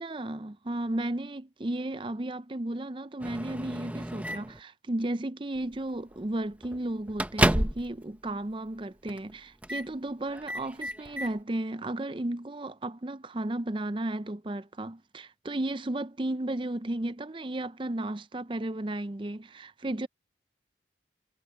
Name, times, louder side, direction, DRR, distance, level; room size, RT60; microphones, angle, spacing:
voice 1, 0.0-20.1, right 1 dB, 30° right, 0.6 m, -34 dB
Microwave oven, 3.2-4.6 5.6-5.8 6.1-6.3 6.6-8.0 8.3-8.4 9.1-9.3 9.6-9.9 10.3-11.3, right 1 dB, 10° right, 1.0 m, -31 dB
head